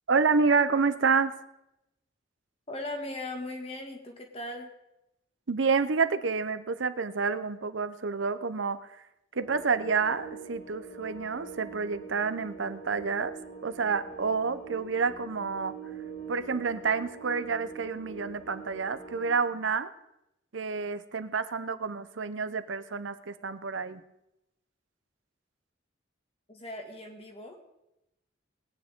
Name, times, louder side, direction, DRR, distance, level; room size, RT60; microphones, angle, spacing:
voice 1, 0.1-1.3 5.5-8.8 9.4-13.3 13.6-15.8 16.3-19.9 20.5-24.0, right 5 dB, 85° right, 13 dB, 0.7 m, -29 dB
voice 2, 2.7-4.7 26.5-27.6, left 1 dB, 30° left, 3 dB, 1.8 m, -38 dB
sound 1, 9.4-19.3, right 5 dB, 50° left, 2.0 m, -44 dB
19.5 x 9.7 x 3.7 m, 0.88 s
head